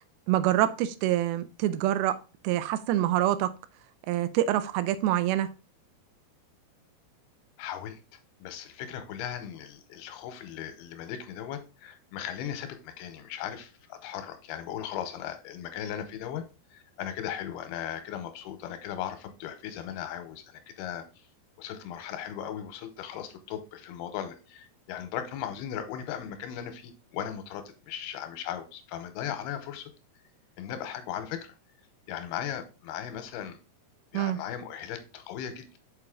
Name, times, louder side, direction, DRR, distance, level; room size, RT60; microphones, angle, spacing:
voice 1, 0.3-2.2 2.4-3.5 4.1-5.5 34.1-34.4, right 13 dB, 80° right, 2.3 m, -26 dB
voice 2, 7.6-8.0 8.4-16.4 16.7-21.3 21.6-29.9 30.6-31.5 32.1-33.6 34.1-35.8, left 9 dB, 90° left, 2.7 m, -37 dB
6.7 x 4.8 x 3.6 m
omnidirectional pair, 4.6 m